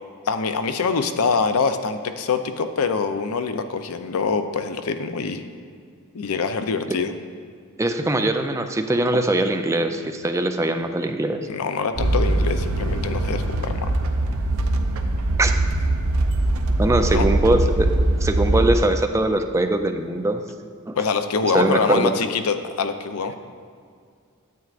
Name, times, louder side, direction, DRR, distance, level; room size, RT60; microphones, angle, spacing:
voice 1, 0.3-5.4 6.1-7.1 11.5-13.9 17.1-17.3 20.9-23.4, left 5 dB, 90° left, 9 dB, 0.5 m, -24 dB
voice 2, 7.8-11.5 15.4-15.5 16.8-21.0 21.5-22.1, right 1 dB, 15° right, 6 dB, 0.4 m, -22 dB
sound 1, 12.0-18.8, right 2 dB, 80° right, 0.6 m, -22 dB
9.2 x 8.1 x 2.5 m, 2.2 s
head